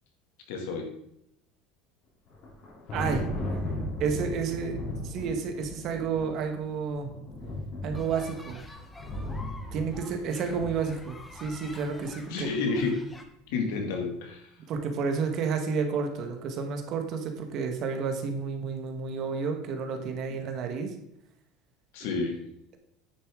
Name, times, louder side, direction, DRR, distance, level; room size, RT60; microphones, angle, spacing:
voice 1, 0.5-0.9 12.3-13.0 13.5-14.5 21.9-22.4, left 4 dB, 75° left, 3 dB, 2.1 m, -30 dB
Thunder, 2.3-11.7, left 1 dB, 40° left, 3.1 m, -36 dB
voice 2, 2.9-3.3 4.0-4.8 5.0-7.1 7.8-8.6 9.7-12.5 14.7-20.9 22.0-22.2, right 5 dB, 40° right, 5 dB, 1.3 m, -31 dB
sound 1, 7.9-13.2, left 2 dB, 10° left, 0.8 m, -48 dB
9.6 x 6.8 x 3.7 m, 0.78 s
cardioid pair, 165°, 0 cm